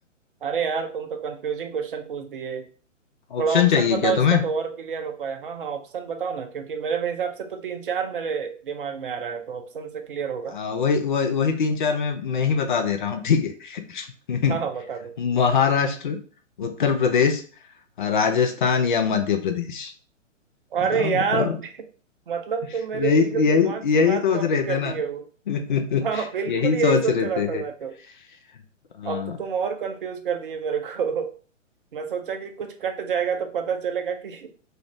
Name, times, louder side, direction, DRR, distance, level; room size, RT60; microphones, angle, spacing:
voice 1, 0.4-2.7 3.4-10.6 14.5-15.1 20.7-21.7 22.3-25.3 26.0-28.0 29.0-31.3 31.9-34.5, right 6 dB, 45° right, 6 dB, 0.5 m, -28 dB
voice 2, 3.3-4.4 10.5-14.6 15.2-16.2 16.6-17.4 18.0-19.9 20.9-21.6 22.9-24.9 25.5-27.6 29.0-29.3, left 6 dB, 40° left, 5 dB, 0.4 m, -22 dB
2.5 x 2.5 x 3.1 m, 0.40 s
figure-of-eight pair, 125°, 38 cm